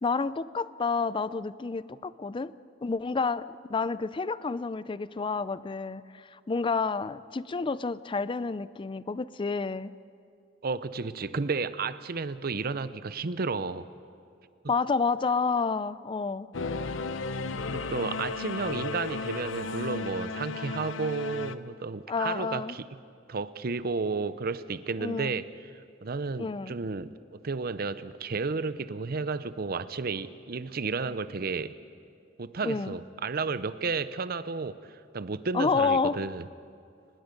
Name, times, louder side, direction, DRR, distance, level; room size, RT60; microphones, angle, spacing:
voice 1, 0.0-2.5 2.8-9.9 14.7-16.5 22.1-22.8 25.0-25.4 26.4-26.7 32.6-33.0 35.5-36.2, left 4 dB, 25° left, 16 dB, 0.4 m, -29 dB
voice 2, 10.6-13.9 17.7-22.9 23.3-25.5 26.0-31.7 32.4-36.4, right 4 dB, 50° right, 14 dB, 0.7 m, -32 dB
Singing / Musical instrument, 16.5-21.6, left 4 dB, 85° left, 0.7 m, -34 dB
24.5 x 20.0 x 5.3 m, 2.5 s
head